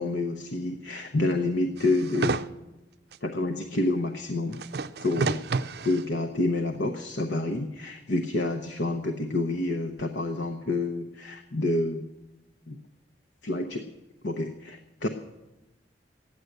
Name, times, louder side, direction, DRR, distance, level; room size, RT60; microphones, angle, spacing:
voice 1, 0.0-2.4 3.2-4.6 5.0-5.5 5.8-12.0 12.7-12.8 13.4-13.8 14.2-15.1, left 2 dB, 85° left, 5 dB, 0.9 m, -28 dB
sound 1, 1.8-2.5 3.1-3.2 4.5-6.0 6.7-6.8, right 4 dB, 60° right, 0.4 m, -30 dB
14.0 x 10.0 x 7.9 m, 1.0 s
head